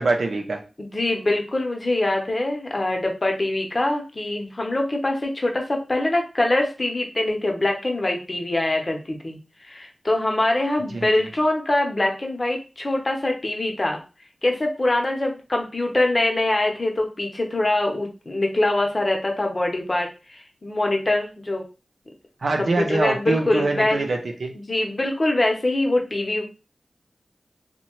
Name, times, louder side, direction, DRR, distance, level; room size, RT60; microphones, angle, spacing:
voice 1, 0.0-0.6 10.9-11.1 22.4-24.5, right 3 dB, 80° right, 4 dB, 0.5 m, -24 dB
voice 2, 0.8-14.0 14.4-21.6 22.6-24.0 24.5-26.4, left 2 dB, 45° left, 2 dB, 0.8 m, -24 dB
2.8 x 2.2 x 3.0 m, 0.31 s
cardioid pair, 45°, 0 cm